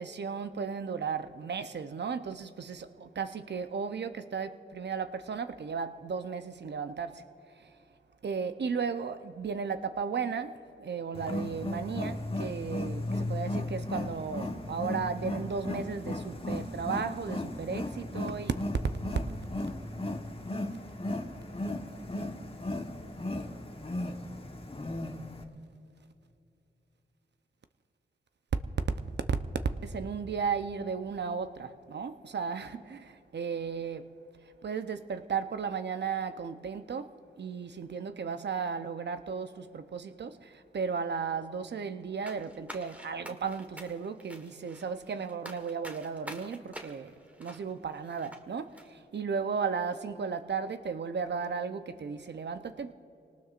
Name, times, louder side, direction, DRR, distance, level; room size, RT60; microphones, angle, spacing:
voice 1, 0.0-7.2 8.2-10.5 10.8-18.5 29.8-34.1 34.6-37.1 37.4-47.1 47.4-48.7 49.1-52.9, right 6 dB, 65° right, 0.8 m, -35 dB
Wild animals, 11.1-25.4, left 1 dB, 30° left, 1.3 m, -36 dB
sound 1, 42.3-48.4 48.7-48.9, equal, 5° right, 1.5 m, -47 dB
26.0 x 18.5 x 2.5 m
cardioid pair, 50°, 19 cm